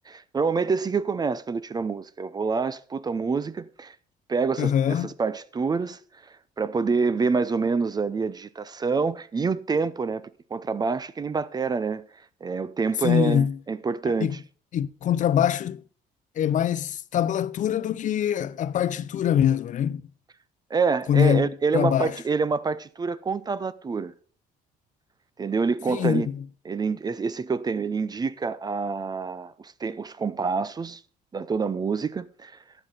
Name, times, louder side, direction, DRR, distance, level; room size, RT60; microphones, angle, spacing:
voice 1, 0.1-4.0 4.3-10.2 10.5-12.0 12.4-14.4 20.7-24.1 25.4-26.3 26.7-31.0 31.3-32.6, right 4 dB, 25° right, 0.5 m, -27 dB
voice 2, 4.6-5.1 13.0-13.6 14.2-14.4 14.7-15.8 16.4-20.0 21.1-22.1 25.9-26.4, left 9 dB, 50° left, 0.5 m, -23 dB
11.5 x 8.1 x 3.9 m
cardioid pair, 110°, 17 cm